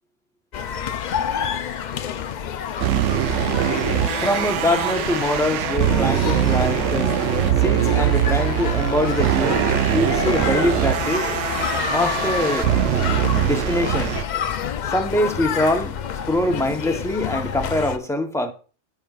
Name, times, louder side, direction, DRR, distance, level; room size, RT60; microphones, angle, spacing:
sound 1, 0.5-18.0, left 8 dB, 60° left, 0.5 m, -28 dB
sound 2, 2.8-14.2, right 12 dB, 80° right, 0.9 m, -22 dB
voice 1, 4.2-7.1 7.6-11.3 11.9-12.7 13.4-14.2 14.9-16.0 16.3-18.5, left 1 dB, 5° left, 0.7 m, -23 dB
sound 3, 8.2-13.2, right 2 dB, 60° right, 1.6 m, -34 dB
15.5 x 5.5 x 2.4 m
omnidirectional pair, 1.2 m